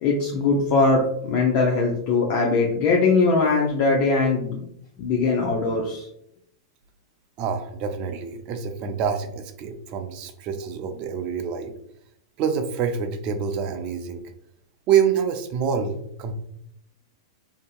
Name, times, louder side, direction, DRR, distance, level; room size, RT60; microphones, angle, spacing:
voice 1, 0.0-4.6 5.0-6.1, left 3 dB, 45° left, -1 dB, 0.5 m, -21 dB
voice 2, 7.4-11.7 12.4-14.2 14.9-16.3, right 7 dB, 40° right, 7 dB, 0.4 m, -26 dB
2.7 x 2.7 x 2.3 m, 0.73 s
hypercardioid pair, 125°, 3 cm